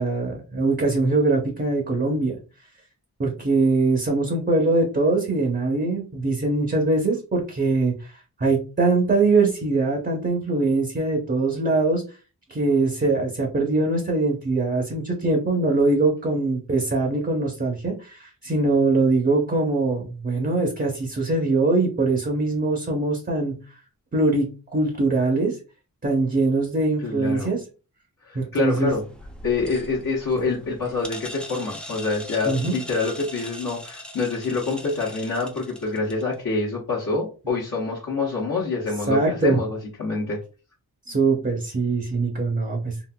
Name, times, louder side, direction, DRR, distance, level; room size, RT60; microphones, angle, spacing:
voice 1, 0.0-2.4 3.2-8.1 8.4-12.0 12.5-23.5 24.1-25.6 26.0-27.6 28.3-29.0 32.5-32.7 39.1-39.6 41.1-42.9, right 3 dB, 30° right, 0 dB, 0.7 m, -22 dB
voice 2, 27.0-27.5 28.3-29.0 29.4-40.4, left 3 dB, 55° left, -7 dB, 1.0 m, -26 dB
sound 1, 28.9-36.3, left 1 dB, 5° left, 0.4 m, -40 dB
3.8 x 2.5 x 2.2 m, 0.34 s
wide cardioid pair, 125°, 37 cm